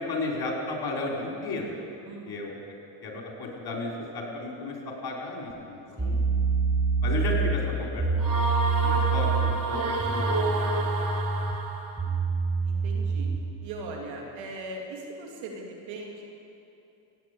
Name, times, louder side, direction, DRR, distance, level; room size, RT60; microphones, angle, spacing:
voice 1, 0.0-1.7 2.3-2.6 3.0-6.3 7.0-8.4 8.8-10.5, left 2 dB, 55° left, -1 dB, 4.5 m, -34 dB
voice 2, 2.0-2.6 6.0-6.3 12.6-13.3 13.6-16.3, right 2 dB, 85° right, 0 dB, 2.7 m, -40 dB
sound 1, 6.0-13.5, right 4 dB, 5° right, 4.0 m, -27 dB
sound 2, 8.2-12.0, right 2 dB, 45° right, 2.4 m, -29 dB
17.0 x 9.2 x 8.2 m, 2.8 s
supercardioid pair, 65°, 45 cm